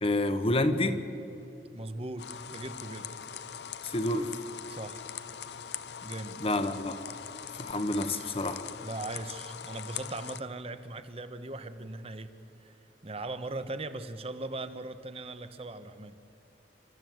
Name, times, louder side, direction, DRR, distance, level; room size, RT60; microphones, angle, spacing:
voice 1, 0.0-1.0 3.8-4.3 6.4-7.0 7.6-8.7, left 1 dB, 35° left, 10 dB, 1.2 m, -28 dB
voice 2, 1.7-3.1 4.7-5.0 6.0-6.4 8.8-12.3 12.6-12.8 13.0-16.2, right 2 dB, 35° right, 10 dB, 1.0 m, -39 dB
sound 1, 2.2-10.4, left 8 dB, 70° left, 0.7 m, -42 dB
27.0 x 14.0 x 7.9 m, 2.9 s
head